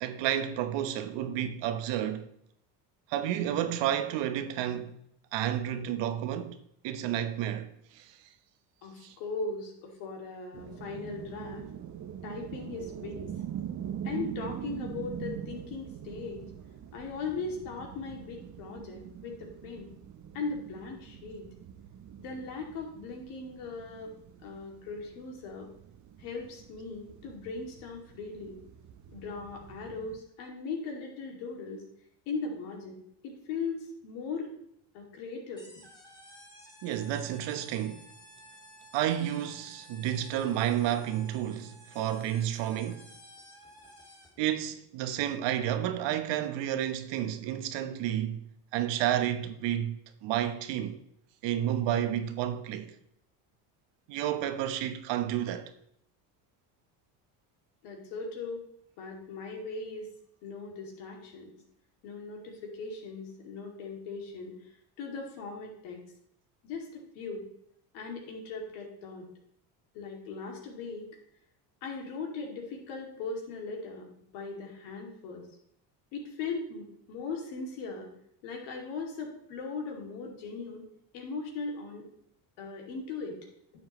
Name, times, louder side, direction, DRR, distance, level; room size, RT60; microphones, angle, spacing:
voice 1, 0.0-2.3 3.1-5.0 5.3-6.6 6.8-8.1 9.0-9.1 36.8-38.0 38.9-43.0 44.4-48.4 48.7-51.0 51.4-52.9 54.1-55.7, right 11 dB, 65° right, 1.1 m, -31 dB
voice 2, 8.8-11.6 12.2-13.3 14.0-16.4 16.9-19.9 20.3-21.5 22.2-24.1 24.4-25.7 26.2-28.6 29.1-31.8 32.3-33.0 33.2-34.5 34.9-35.7 57.8-58.6 59.0-60.1 60.4-61.5 62.0-64.5 65.0-66.0 66.6-67.4 67.9-69.3 69.9-71.1 71.8-74.1 74.3-75.5 76.1-78.1 78.4-80.8 81.1-82.1 82.6-83.4, left 4 dB, 75° left, 2.6 m, -39 dB
sound 1, 10.5-30.2, right 9 dB, 40° right, 0.8 m, -43 dB
sound 2, 35.6-44.5, equal, 10° left, 2.9 m, -53 dB
11.0 x 7.2 x 3.1 m
supercardioid pair, 80°, 46 cm